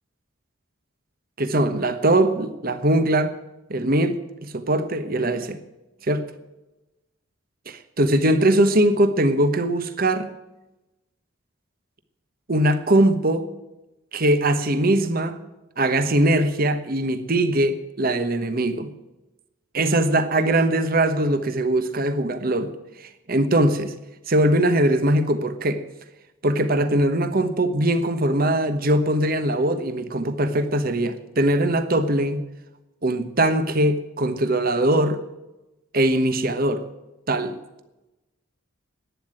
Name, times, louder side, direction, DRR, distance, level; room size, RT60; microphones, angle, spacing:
voice 1, 1.4-3.4 3.7-5.6 6.1-6.2 7.7-10.3 12.5-13.5 14.1-15.4 15.8-18.9 19.7-22.7 23.0-23.9 24.3-25.9 26.4-32.4 33.0-35.2 35.9-36.8 37.3-37.6, right 1 dB, 45° right, 1.2 m, -21 dB
11.5 x 9.6 x 8.9 m
head